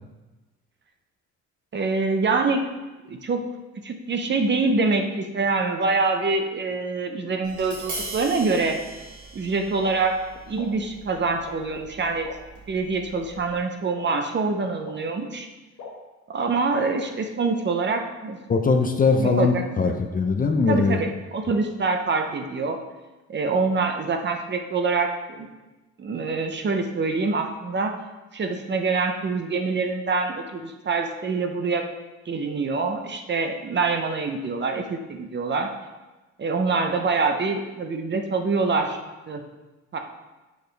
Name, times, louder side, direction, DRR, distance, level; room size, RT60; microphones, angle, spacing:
voice 1, 1.7-2.7 3.1-3.4 3.8-8.8 9.3-12.3 12.7-15.5 16.3-18.4 19.2-19.6 20.7-22.8 23.3-25.5 26.0-27.9 28.3-31.8 32.3-35.7 36.4-39.0 39.3-39.4 39.9-40.0, right 4 dB, 35° right, 5 dB, 0.7 m, -25 dB
Tap, 7.4-13.6, right 2 dB, 75° right, 2.2 m, -40 dB
sound 1, 9.8-9.9 10.6-10.7 11.4-11.6 12.2-12.4 13.1-13.2 14.0-14.1 14.8-14.9 15.8-15.9 16.8-16.9, left 6 dB, 70° left, 1.2 m, -39 dB
voice 2, 18.5-21.0, left 4 dB, 30° left, 5 dB, 0.5 m, -21 dB
6.3 x 5.1 x 3.3 m, 1.1 s
cardioid pair, 90°, 30 cm